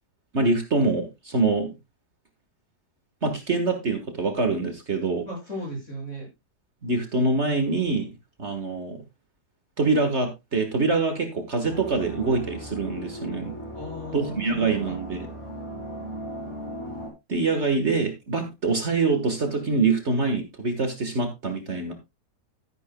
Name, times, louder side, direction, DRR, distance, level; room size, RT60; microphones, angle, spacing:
voice 1, 0.3-1.8 3.2-5.3 6.8-8.1 8.4-9.0 9.8-13.5 14.1-15.3 17.3-21.9, right 3 dB, 45° right, 6 dB, 1.7 m, -25 dB
voice 2, 5.2-6.3 13.7-15.0, equal, 50° left, -1 dB, 7.0 m, -36 dB
sound 1, 11.6-17.1, equal, 20° left, 3.7 m, -37 dB
13.0 x 11.0 x 2.2 m, 0.22 s
omnidirectional pair, 1.7 m